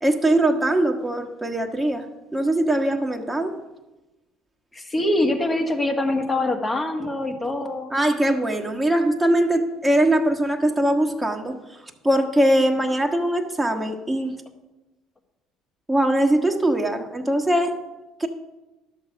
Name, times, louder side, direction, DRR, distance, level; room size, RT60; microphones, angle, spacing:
voice 1, 0.0-2.0 2.3-3.5 7.9-11.5 12.0-14.3 15.9-17.7 18.2-18.3, right 1 dB, 10° right, 1 dB, 1.3 m, -21 dB
voice 2, 4.7-7.9, left 1 dB, 25° left, 4 dB, 1.6 m, -24 dB
11.0 x 6.7 x 5.7 m, 1.1 s
hypercardioid pair, 65°, 0 cm